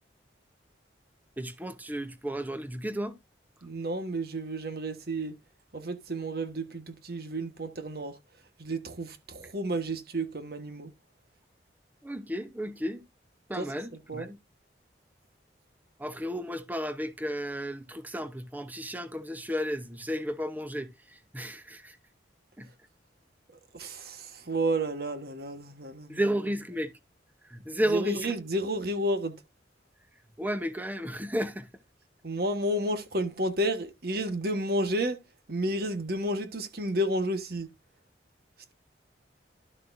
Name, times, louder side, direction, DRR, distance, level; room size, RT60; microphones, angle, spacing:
voice 1, 1.4-3.2 12.0-13.0 13.5-14.4 16.0-22.0 22.6-22.7 26.1-26.9 27.5-28.3 30.4-31.7, equal, 10° right, 0.8 m, -33 dB
voice 2, 3.6-5.3 5.7-8.1 8.6-10.9 13.5-13.7 14.1-14.3 23.7-26.2 27.9-29.4 32.2-35.2 35.5-37.7, right 1 dB, 55° right, 1.4 m, -31 dB
12.0 x 6.6 x 2.6 m
head